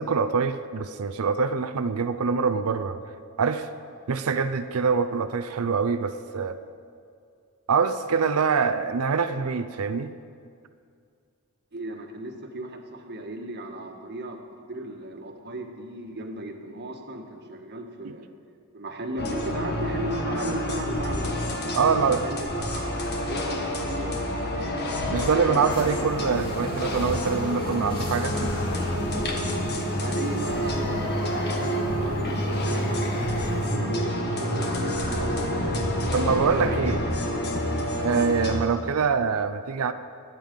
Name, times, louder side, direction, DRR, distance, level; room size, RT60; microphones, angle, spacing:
voice 1, 0.0-3.0 3.4-3.7 4.1-6.6 7.7-10.1 21.8-22.2 25.1-28.6 36.1-37.0 38.0-39.9, right 5 dB, 75° right, 9 dB, 0.6 m, -24 dB
voice 2, 11.7-18.3 18.7-21.4 21.9-23.0 23.3-24.8 25.2-26.0 30.0-36.0 36.6-37.2 38.1-38.3, right 1 dB, 50° right, 3 dB, 1.5 m, -36 dB
sound 1, 19.2-38.6, left 1 dB, 50° left, 1.7 m, -28 dB
sound 2, 25.7-33.7, right 1 dB, 25° left, 3.0 m, -41 dB
21.0 x 9.1 x 5.2 m, 2.3 s
head